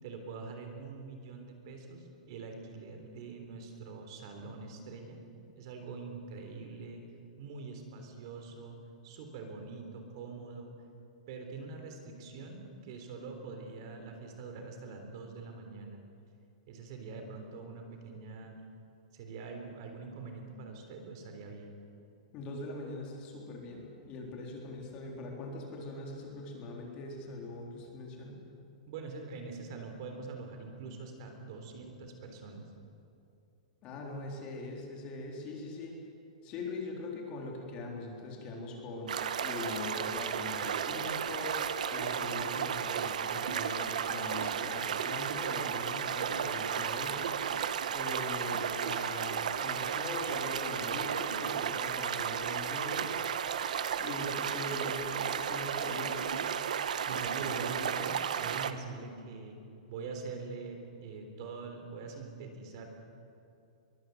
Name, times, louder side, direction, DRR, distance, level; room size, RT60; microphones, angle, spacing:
voice 1, 0.0-5.2 5.5-7.0 7.4-10.7 11.3-16.0 16.7-18.6 19.1-21.7 28.9-32.6 57.1-59.6 59.9-62.9, right 4 dB, 40° right, 4 dB, 3.7 m, -44 dB
voice 2, 22.3-28.4 33.8-36.0 36.4-41.6 41.9-47.3 47.9-53.3 54.0-56.5, left 2 dB, 25° left, 0 dB, 3.6 m, -41 dB
sound 1, 39.1-58.7, right 8 dB, 85° right, 1.3 m, -34 dB
23.0 x 22.5 x 8.0 m, 2.6 s
supercardioid pair, 170°, 4 cm